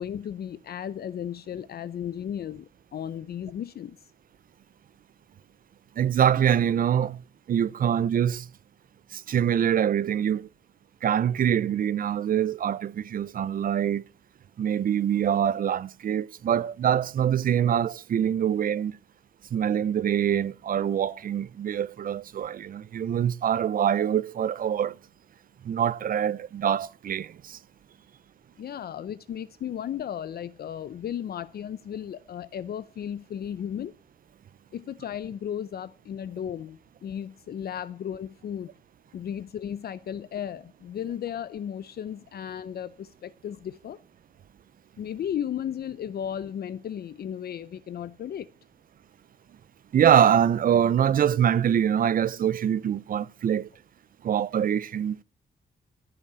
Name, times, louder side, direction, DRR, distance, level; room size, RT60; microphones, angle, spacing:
voice 1, 0.0-4.0 28.6-33.9 34.7-38.7 39.1-44.0 45.0-48.5, left 9 dB, 60° left, 0.6 m, -35 dB
voice 2, 6.0-7.2 7.5-8.5 9.1-10.5 11.0-14.0 14.6-18.9 19.5-25.0 25.6-27.6 49.9-53.7 54.2-55.2, right 9 dB, 50° right, 0.5 m, -24 dB
14.0 x 5.9 x 6.8 m
wide cardioid pair, 145°, 18 cm